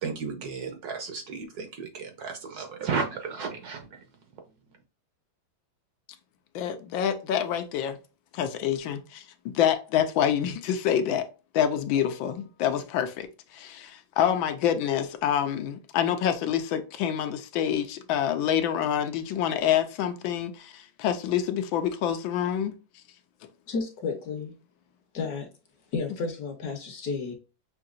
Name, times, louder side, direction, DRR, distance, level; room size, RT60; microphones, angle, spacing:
voice 1, 0.0-4.0, right 5 dB, 65° right, 1.1 m, -33 dB
voice 2, 6.5-8.0 8.3-11.3 11.5-22.8, left 9 dB, 85° left, 1.4 m, -27 dB
voice 3, 23.7-24.5 25.1-25.5 25.9-27.3, left 4 dB, 60° left, 1.2 m, -32 dB
6.0 x 2.7 x 2.5 m
omnidirectional pair, 2.1 m